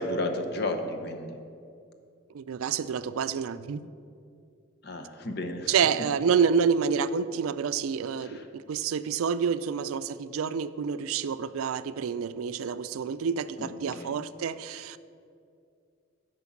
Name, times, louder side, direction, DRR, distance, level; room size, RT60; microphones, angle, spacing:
voice 1, 0.0-1.4 4.8-5.8 8.2-8.5 13.6-14.2, left 1 dB, 50° left, 5 dB, 0.8 m, -33 dB
voice 2, 2.3-3.9 5.7-15.0, right 6 dB, 85° right, 14 dB, 0.4 m, -28 dB
9.6 x 5.2 x 7.2 m, 2.4 s
head